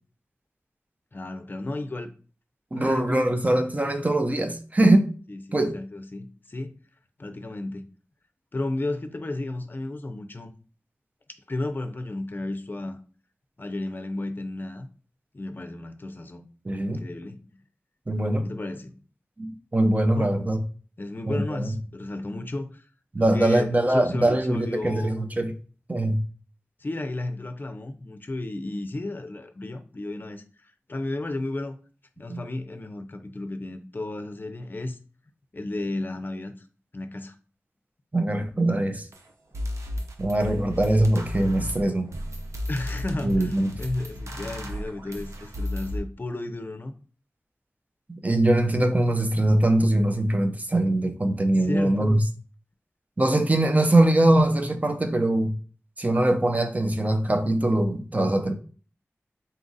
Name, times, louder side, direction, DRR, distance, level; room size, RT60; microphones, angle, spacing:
voice 1, 1.1-2.1 2.7-3.4 5.3-5.4 5.7-6.8 7.2-7.9 8.5-10.5 11.5-13.0 13.6-14.9 15.3-16.5 16.9-17.5 18.4-18.9 20.2-20.4 21.0-22.8 23.2-25.2 26.8-30.4 30.9-31.8 32.2-35.0 35.5-36.5 36.9-37.3 42.7-46.9 51.7-52.3, left 2 dB, 40° left, 0.5 m, -33 dB
voice 2, 2.7-5.1 5.5-5.8 16.6-17.0 18.1-18.4 19.4-20.6 21.3-21.8 23.1-25.5 25.9-26.2 32.3-32.4 38.1-39.1 40.2-42.1 43.2-43.8 48.1-52.2 53.2-55.6 56.0-58.5, right 1 dB, 30° right, 0.6 m, -22 dB
sound 1, 39.1-39.2 39.5-46.0, left 1 dB, 80° right, 0.6 m, -34 dB
4.0 x 2.4 x 3.9 m
wide cardioid pair, 60°, 5 cm